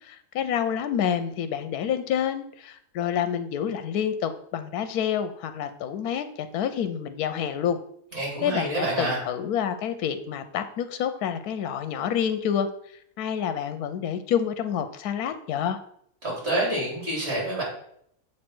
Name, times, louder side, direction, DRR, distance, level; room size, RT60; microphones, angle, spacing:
voice 1, 0.0-7.8 8.4-12.7 13.2-15.8, left 8 dB, 80° left, 10 dB, 1.1 m, -28 dB
voice 2, 8.1-9.2 16.2-17.6, right 1 dB, 45° right, -5 dB, 3.5 m, -27 dB
7.4 x 3.2 x 6.0 m, 0.69 s
omnidirectional pair, 1.6 m